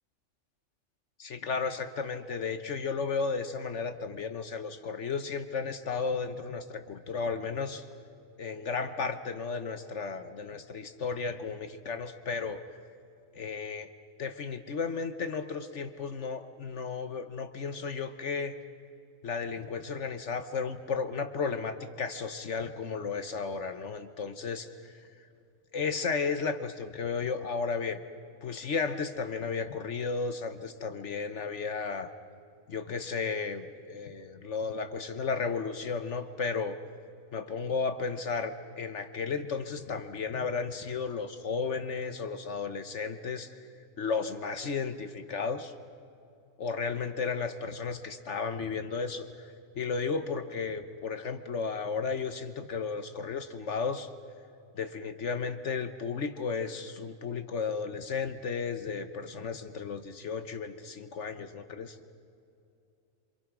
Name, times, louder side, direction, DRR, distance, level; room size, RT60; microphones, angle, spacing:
voice 1, 1.2-7.8 8.4-12.6 13.3-13.9 14.2-18.6 19.2-25.0 25.7-28.0 28.4-32.1 32.7-36.7 37.3-43.5 44.0-45.7 46.6-54.1 54.7-62.0, left 5 dB, 60° left, 9 dB, 1.3 m, -34 dB
29.0 x 26.0 x 6.1 m, 2.6 s
omnidirectional pair, 1.4 m